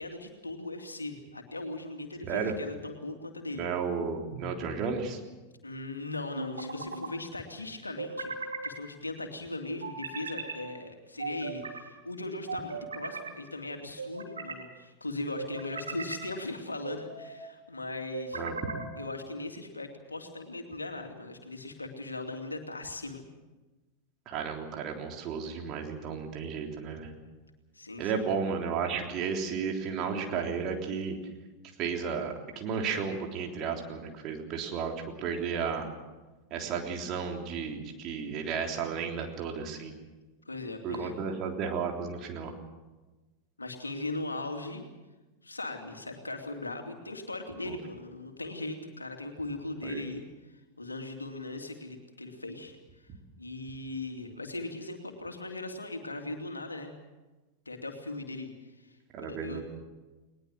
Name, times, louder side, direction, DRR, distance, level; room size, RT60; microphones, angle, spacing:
voice 1, 0.0-3.7 5.6-18.4 19.0-23.2 27.7-28.3 40.4-41.1 43.6-44.8 45.4-50.2 50.8-52.7 53.4-56.9 57.7-59.6, left 2 dB, 80° left, 4 dB, 2.7 m, -39 dB
voice 2, 2.2-2.5 3.5-5.2 18.3-18.6 24.2-27.1 28.0-31.2 31.8-34.9 35.2-35.9 36.5-39.9 40.8-42.5 47.6-47.8 49.8-50.0 59.1-59.6, right 6 dB, 35° right, 2 dB, 3.5 m, -33 dB
sound 1, 4.3-5.0 6.3-7.1 8.0-8.8 9.8-10.6 11.2-11.8 12.5-13.3 14.0-14.6 15.4-16.3 16.8-17.4 18.1-18.9, right 3 dB, 75° right, 3.2 m, -38 dB
20.5 x 20.5 x 7.6 m, 1.2 s
figure-of-eight pair, 90°, 0 cm